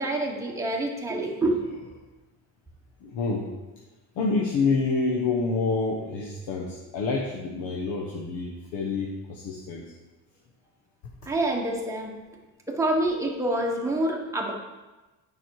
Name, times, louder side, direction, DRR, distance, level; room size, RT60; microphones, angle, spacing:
voice 1, 0.0-1.6 11.2-12.1 12.7-14.5, right 1 dB, 5° right, -1 dB, 1.1 m, -27 dB
voice 2, 3.0-3.5 4.2-9.8, left 4 dB, 85° left, 0 dB, 1.2 m, -27 dB
9.1 x 5.6 x 4.7 m, 1.1 s
cardioid pair, 155°, 40 cm